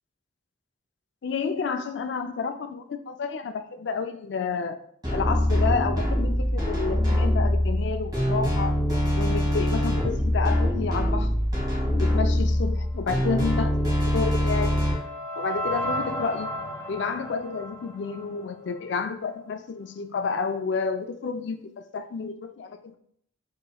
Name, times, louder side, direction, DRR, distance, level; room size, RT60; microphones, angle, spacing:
voice 1, 1.2-4.8 5.1-8.7 9.1-11.3 12.0-14.8 15.4-16.5 16.9-23.0, left 5 dB, 65° left, 8 dB, 0.4 m, -30 dB
sound 1, 5.0-14.9, equal, 20° right, 1.6 m, -24 dB
sound 2, 13.8-18.9, equal, 15° left, 0.7 m, -34 dB
5.3 x 3.0 x 2.3 m, 0.65 s
head